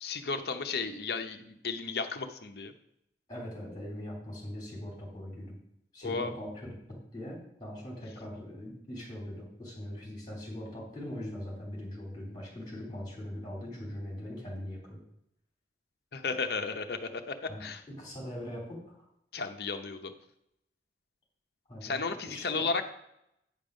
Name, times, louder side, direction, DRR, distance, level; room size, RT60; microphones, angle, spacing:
voice 1, 0.0-2.7 6.0-6.3 16.1-17.3 17.6-17.8 19.3-20.1 21.8-22.9, left 4 dB, 60° left, 7 dB, 0.7 m, -34 dB
voice 2, 3.3-5.6 5.9-15.0 17.5-19.0 21.7-22.7, left 1 dB, 25° left, -3 dB, 3.4 m, -41 dB
9.2 x 5.4 x 5.2 m, 0.78 s
head